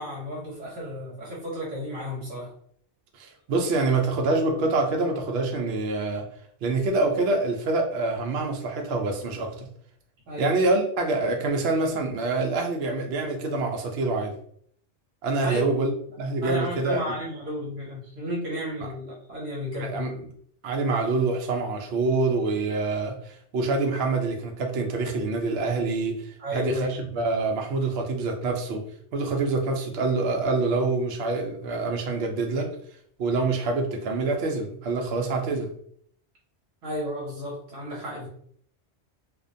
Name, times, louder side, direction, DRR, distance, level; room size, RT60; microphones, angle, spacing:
voice 1, 0.0-2.5 10.3-10.5 15.4-15.6 16.4-20.1 26.4-26.9 36.8-38.3, equal, 85° right, -4 dB, 1.0 m, -33 dB
voice 2, 3.1-6.2 6.6-9.7 10.4-14.3 15.2-15.9 16.2-17.0 19.8-20.3 20.6-28.8 29.1-32.7 33.2-35.7, right 3 dB, 65° right, 2 dB, 0.7 m, -26 dB
2.4 x 2.1 x 2.5 m, 0.64 s
omnidirectional pair, 1.2 m